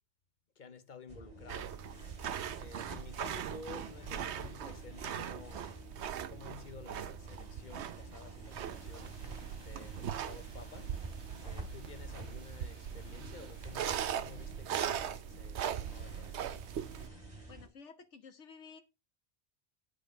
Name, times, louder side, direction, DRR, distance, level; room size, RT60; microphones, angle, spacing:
voice 1, 0.6-1.8 2.5-5.8 6.3-9.2 9.6-10.9 11.4-16.7, left 5 dB, 45° left, 1.0 m, -52 dB
sound 1, 1.1-17.7, right 2 dB, 35° right, 2.8 m, -49 dB
sound 2, 1.5-17.1, right 9 dB, 75° right, 1.0 m, -40 dB
sound 3, 8.5-14.2, left 1 dB, 20° left, 2.1 m, -63 dB
voice 2, 17.5-18.8, left 5 dB, 80° left, 1.6 m, -53 dB
10.0 x 5.2 x 5.1 m
omnidirectional pair, 1.2 m